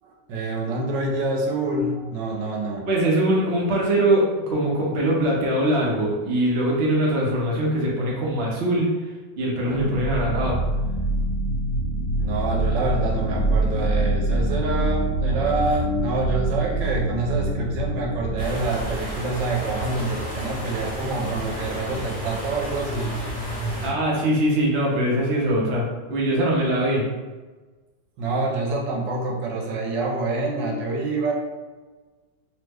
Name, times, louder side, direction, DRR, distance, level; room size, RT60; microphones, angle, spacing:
voice 1, 0.0-2.9 12.2-23.1 28.2-31.3, right 2 dB, 85° right, -1 dB, 1.3 m, -26 dB
voice 2, 2.9-8.9 9.4-10.6 23.8-27.1, right 1 dB, 55° right, -3 dB, 0.7 m, -22 dB
sound 1, 9.6-19.4, right 2 dB, 80° left, 1.3 m, -25 dB
sound 2, 18.4-23.9, equal, 15° left, 0.8 m, -32 dB
3.1 x 2.1 x 3.4 m, 1.3 s
omnidirectional pair, 2.0 m